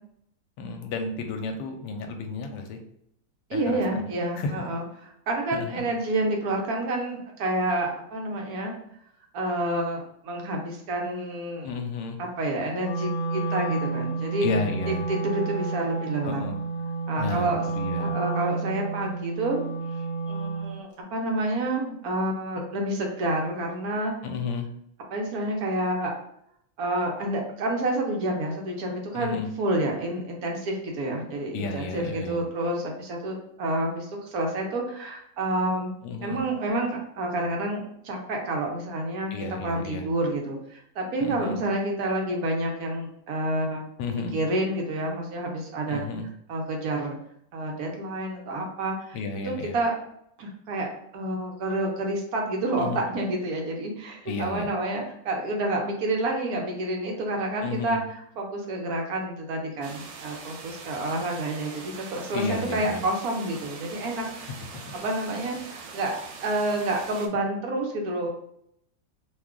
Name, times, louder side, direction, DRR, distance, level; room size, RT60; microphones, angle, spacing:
voice 1, 0.6-2.8 3.5-4.1 4.4-4.6 5.5-5.9 11.6-12.2 14.4-15.1 16.2-16.6 17.2-18.1 24.2-24.7 29.1-29.5 31.5-32.4 36.0-36.4 39.3-40.1 41.2-41.6 44.0-44.4 45.9-46.3 49.1-49.8 52.8-53.0 54.2-54.7 57.6-58.0 62.3-63.0 64.7-64.8, left 4 dB, 75° left, 5 dB, 1.2 m, -32 dB
voice 2, 3.5-4.8 5.3-8.7 9.3-11.7 12.2-14.5 14.9-16.4 17.1-17.6 18.0-19.6 20.3-24.1 25.1-26.1 26.8-35.9 36.2-39.3 39.6-43.8 44.3-46.0 46.5-47.2 47.5-49.2 49.4-49.9 50.4-64.5 64.9-66.2 66.4-68.3, right 1 dB, 65° right, 1 dB, 1.1 m, -29 dB
Wind instrument woodwind instrument, 12.8-20.8, right 4 dB, 55° left, 1.1 m, -30 dB
sound 1, 59.8-67.3, right 4 dB, 85° right, 1.3 m, -42 dB
3.0 x 2.3 x 3.5 m, 0.71 s
omnidirectional pair, 1.9 m